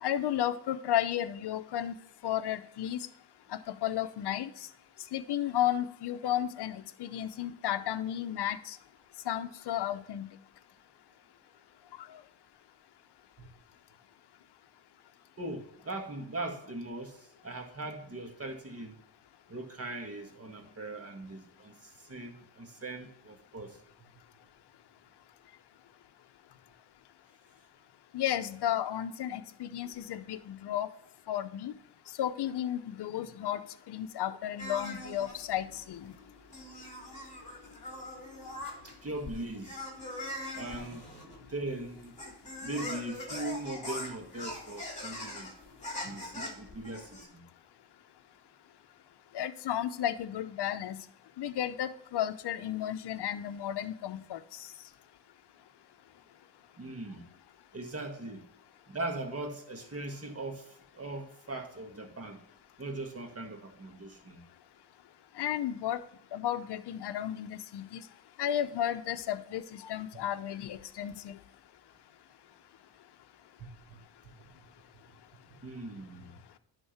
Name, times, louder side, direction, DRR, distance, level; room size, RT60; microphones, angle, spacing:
voice 1, 0.0-1.9 2.2-3.0 3.7-4.5 5.1-8.8 9.3-10.3 28.1-30.9 31.3-31.7 32.2-33.6 33.9-36.1 49.3-51.0 51.4-54.4 65.4-66.0 66.3-68.0 68.4-71.4, left 11 dB, 55° left, 11 dB, 0.8 m, -33 dB
voice 2, 15.4-19.0 19.5-23.8 38.8-39.9 40.5-41.1 41.5-42.1 42.6-45.5 46.0-47.5 56.8-57.3 57.7-58.4 58.9-62.4 62.8-64.4 73.6-74.3 75.5-76.4, right 2 dB, 30° right, 4 dB, 1.9 m, -40 dB
sound 1, 34.6-47.2, left 1 dB, 15° left, 2.9 m, -42 dB
11.0 x 3.9 x 5.8 m, 0.75 s
cardioid pair, 80°, 48 cm